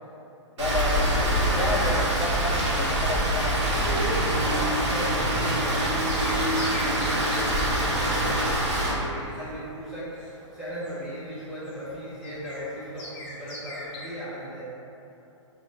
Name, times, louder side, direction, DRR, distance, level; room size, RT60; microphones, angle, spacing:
voice 1, 0.6-3.6, left 2 dB, 75° left, -1 dB, 0.7 m, -30 dB
Rain, 0.6-8.9, right 1 dB, 65° right, 0.9 m, -25 dB
voice 2, 1.4-1.9 3.8-14.6, equal, 5° right, -11 dB, 0.7 m, -36 dB
Motorcycle, 2.1-9.8, right 2 dB, 45° right, 0.4 m, -41 dB
sound 1, 5.3-14.1, left 1 dB, 45° left, 1.5 m, -44 dB
4.7 x 2.2 x 2.7 m, 2.8 s
hypercardioid pair, 145°, 16 cm